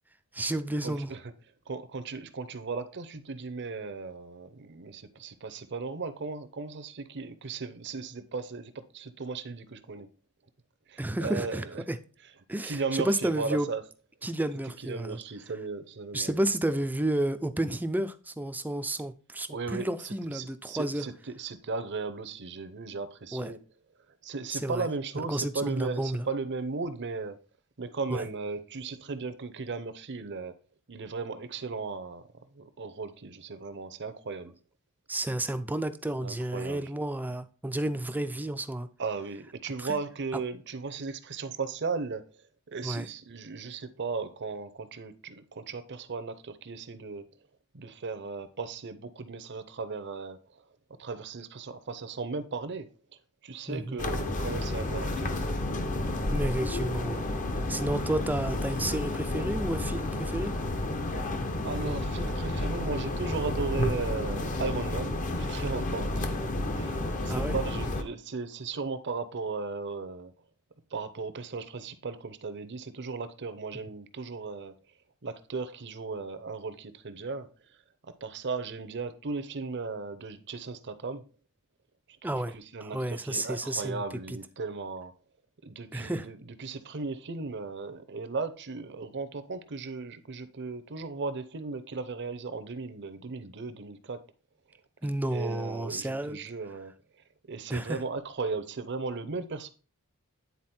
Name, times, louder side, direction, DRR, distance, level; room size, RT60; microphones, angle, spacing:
voice 1, 0.3-1.1 11.0-12.0 12.5-13.7 14.2-15.2 16.1-21.1 23.3-23.5 24.5-24.9 25.3-26.3 28.1-28.3 35.1-38.9 39.8-39.9 42.8-43.1 53.7-54.0 56.3-57.3 57.7-60.5 67.3-67.6 82.2-82.6 82.8-84.0 84.3-84.4 85.9-86.3 95.0-96.4 97.7-98.0, right 1 dB, 10° right, 0.4 m, -31 dB
voice 2, 0.8-1.2 1.7-10.1 10.9-11.8 12.6-13.8 14.8-16.4 19.5-23.6 24.2-27.4 27.8-30.5 30.9-32.3 32.5-34.5 36.2-36.9 39.0-42.4 42.7-47.3 47.7-50.6 51.0-52.9 53.4-55.4 61.6-66.5 66.7-70.3 70.9-74.7 75.2-77.5 78.0-81.3 82.2-85.1 85.6-94.2 95.3-99.7, right 4 dB, 55° right, 0.7 m, -36 dB
sound 1, 54.0-68.0, left 1 dB, 35° left, 0.7 m, -31 dB
9.5 x 4.1 x 4.3 m
head